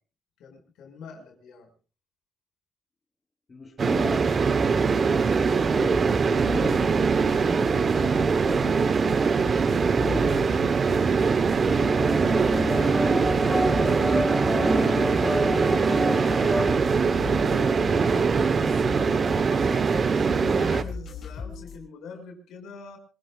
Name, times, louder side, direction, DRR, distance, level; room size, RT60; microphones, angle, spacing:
voice 1, 0.4-1.7 11.8-13.7 14.1-16.7 17.3-23.0, left 5 dB, 85° left, 3 dB, 6.0 m, -42 dB
voice 2, 3.5-10.8, left 3 dB, 35° left, 2 dB, 3.9 m, -39 dB
sound 1, 3.8-20.8, right 5 dB, 45° right, 1.1 m, -22 dB
sound 2, 4.0-21.8, left 5 dB, 50° left, 5.2 m, -39 dB
sound 3, 11.7-16.7, equal, 5° left, 2.1 m, -28 dB
26.5 x 18.0 x 2.5 m, 0.37 s
cardioid pair, 90°, 0 cm